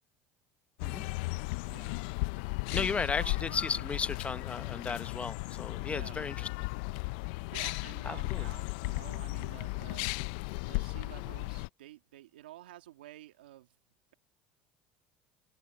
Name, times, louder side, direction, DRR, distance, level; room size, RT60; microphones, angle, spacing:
sound 1, 0.8-11.7, left 25 dB, 75° left, 0.5 m, -36 dB
voice 1, 1.7-2.0 2.7-4.0 5.8-6.2 7.5-10.1 10.7-13.8, right 14 dB, 90° right, 1.7 m, -51 dB
voice 2, 2.7-6.5 8.0-8.5, left 5 dB, 25° left, 1.1 m, -35 dB
open air
hypercardioid pair, 80°, 5 cm